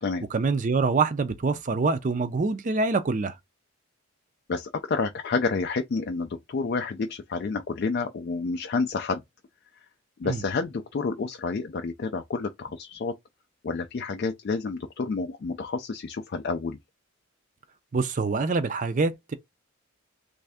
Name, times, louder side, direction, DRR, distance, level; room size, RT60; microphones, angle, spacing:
voice 1, 0.3-3.3 10.2-10.4 17.9-19.3, right 4 dB, 35° right, 0.4 m, -25 dB
voice 2, 4.5-9.2 10.2-13.1 13.6-16.8, left 4 dB, 45° left, 0.3 m, -29 dB
3.2 x 2.6 x 3.4 m
head